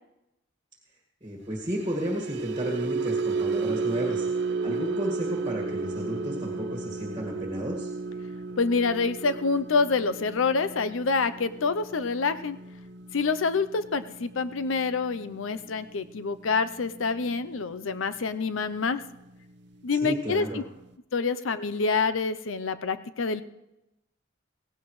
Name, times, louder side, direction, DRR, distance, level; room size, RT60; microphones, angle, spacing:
voice 1, 1.2-4.3 4.6-7.9 19.9-20.6, equal, 25° right, -1 dB, 1.8 m, -32 dB
sound 1, 1.6-18.0 18.3-18.6 19.0-19.2, right 4 dB, 60° right, 0.7 m, -34 dB
voice 2, 8.6-12.6 13.1-19.0 19.8-20.6 21.1-23.4, left 4 dB, 85° left, 12 dB, 0.6 m, -27 dB
17.5 x 16.5 x 3.2 m, 0.93 s
head